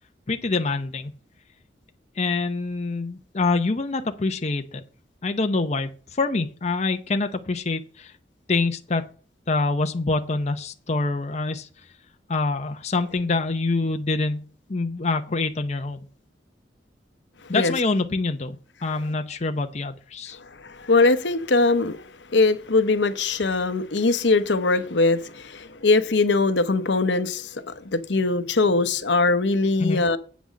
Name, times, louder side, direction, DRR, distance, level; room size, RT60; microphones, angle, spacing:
voice 1, 0.3-1.1 2.2-4.8 5.2-8.1 8.5-9.0 9.5-11.7 12.3-14.4 14.7-16.0 17.5-18.6 18.8-20.4 29.8-30.0, left 3 dB, 40° left, 0.6 m, -25 dB
voice 2, 20.6-22.0 22.3-30.2, left 3 dB, 75° left, 0.8 m, -21 dB
8.3 x 6.1 x 6.2 m
head